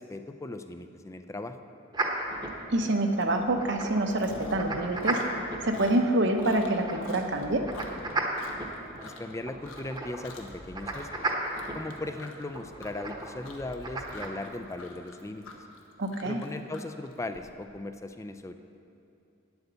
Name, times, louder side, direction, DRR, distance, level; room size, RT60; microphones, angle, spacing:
voice 1, 0.0-1.6 9.0-11.1 11.7-15.4 16.2-18.5, left 2 dB, 15° left, 8 dB, 0.4 m, -38 dB
sound 1, 1.9-14.3, right 2 dB, 20° right, 0.9 m, -36 dB
voice 2, 2.7-5.2 5.6-7.6 16.0-16.4, right 1 dB, 60° right, 5 dB, 0.9 m, -26 dB
Chewing mastication, 3.2-3.4 3.7-4.7 5.0-9.3 9.6-10.0 10.2-10.6 10.9-17.4, left 3 dB, 85° left, 1.1 m, -46 dB
9.5 x 8.0 x 6.8 m, 2.7 s
head